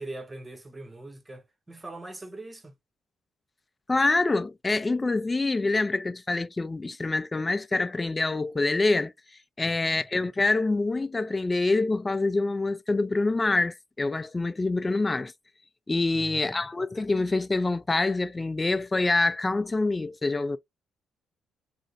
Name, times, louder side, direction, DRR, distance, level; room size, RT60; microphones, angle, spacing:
voice 1, 0.0-2.7 9.6-10.0 16.1-16.7, right 2 dB, 15° right, 0.7 m, -42 dB
voice 2, 3.9-9.1 9.6-15.3 15.9-20.6, left 3 dB, 20° left, 0.3 m, -26 dB
2.4 x 2.1 x 3.7 m
cardioid pair, 90°, 0 cm